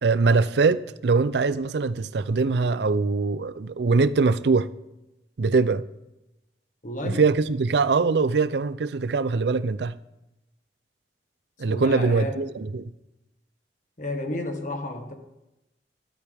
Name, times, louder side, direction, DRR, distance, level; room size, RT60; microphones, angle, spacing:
voice 1, 0.0-4.7 5.4-5.8 7.0-9.9 11.6-12.9, right 4 dB, 75° right, 0.5 m, -22 dB
voice 2, 6.8-7.2 11.7-12.4 14.0-15.1, left 1 dB, 45° left, 1.6 m, -31 dB
13.0 x 13.0 x 3.5 m
head